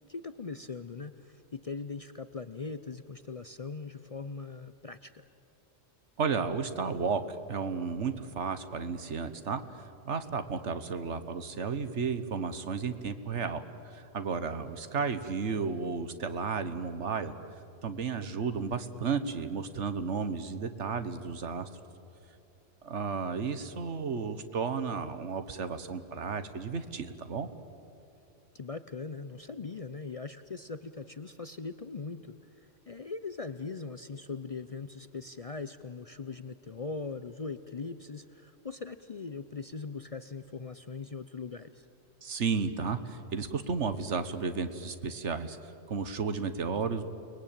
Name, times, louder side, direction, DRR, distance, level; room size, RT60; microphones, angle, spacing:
voice 1, 0.0-5.2 15.0-15.1 15.6-15.7 28.5-41.9, left 4 dB, 40° left, 11 dB, 0.6 m, -40 dB
voice 2, 6.2-7.2 7.5-9.6 10.1-17.3 17.8-21.7 22.8-27.5 42.2-45.6 45.9-47.0, right 5 dB, 70° right, 11 dB, 1.5 m, -33 dB
29.5 x 20.5 x 8.8 m, 2.8 s
omnidirectional pair, 1.2 m